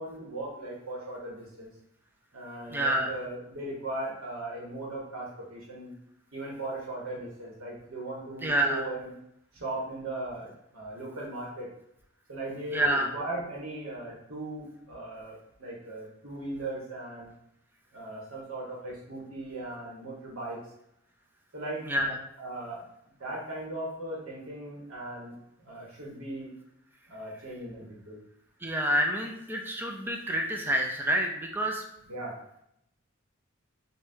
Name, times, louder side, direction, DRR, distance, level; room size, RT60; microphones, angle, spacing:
voice 1, 0.0-1.7 2.3-5.9 6.3-9.1 9.5-11.7 12.3-17.3 17.9-20.6 21.5-21.9 22.4-22.9 23.2-26.5 27.1-28.2 32.1-32.4, right 2 dB, 85° right, -4 dB, 1.0 m, -38 dB
voice 2, 2.7-3.1 8.4-8.8 12.7-13.1 21.8-22.1 28.6-31.8, right 1 dB, 10° right, 2 dB, 0.4 m, -28 dB
5.3 x 2.2 x 2.6 m, 0.78 s
head